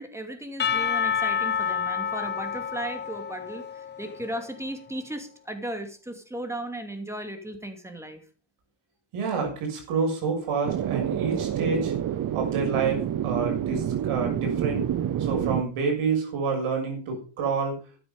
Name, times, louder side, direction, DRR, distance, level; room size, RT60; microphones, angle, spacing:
voice 1, 0.0-8.2, right 1 dB, 5° right, 6 dB, 2.7 m, -36 dB
Percussion / Church bell, 0.6-4.6, left 7 dB, 20° left, 0.6 m, -29 dB
voice 2, 9.1-11.9 12.3-14.9 15.2-17.8, right 4 dB, 85° right, 3 dB, 6.8 m, -28 dB
sound 1, 10.6-15.6, right 10 dB, 40° right, 0.8 m, -28 dB
12.5 x 10.0 x 5.3 m, 0.38 s
cardioid pair, 140°, 49 cm